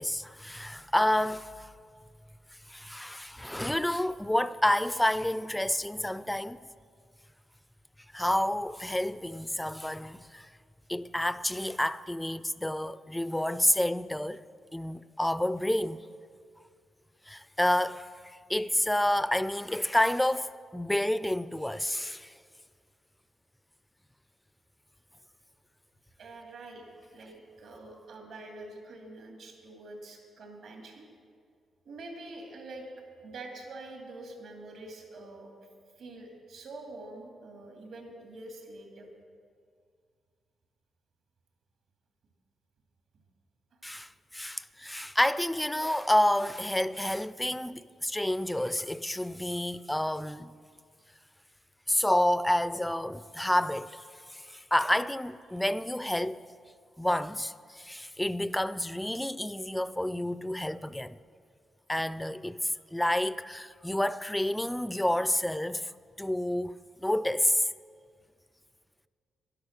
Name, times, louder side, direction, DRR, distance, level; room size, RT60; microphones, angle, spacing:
voice 1, 0.0-1.7 2.7-6.6 8.1-10.5 10.9-14.4 14.7-16.0 17.3-18.1 18.5-22.3 43.8-50.5 51.9-54.0 54.3-56.4 57.0-61.1 61.9-65.9 66.2-67.6, left 1 dB, 5° left, 0.4 m, -29 dB
voice 2, 26.2-26.8 27.1-31.1 31.8-32.8 33.2-35.5 36.0-39.1, right 2 dB, 70° right, 2.6 m, -45 dB
12.0 x 10.5 x 6.5 m
cardioid pair, 100°, 0 cm